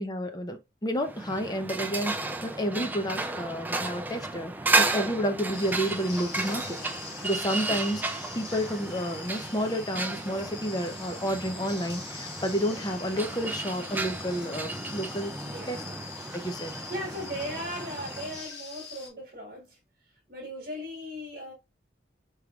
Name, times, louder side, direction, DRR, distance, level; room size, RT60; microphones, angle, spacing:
voice 1, 0.0-6.7 7.2-15.3 15.7-15.8 16.3-16.7, equal, 20° left, 0.7 m, -30 dB
sound 1, 1.0-18.4, right 2 dB, 10° right, 0.4 m, -33 dB
sound 2, 5.5-19.1, left 4 dB, 65° left, 2.1 m, -43 dB
voice 2, 15.4-16.0 16.7-21.5, equal, 55° right, 1.7 m, -38 dB
4.6 x 3.5 x 2.4 m
head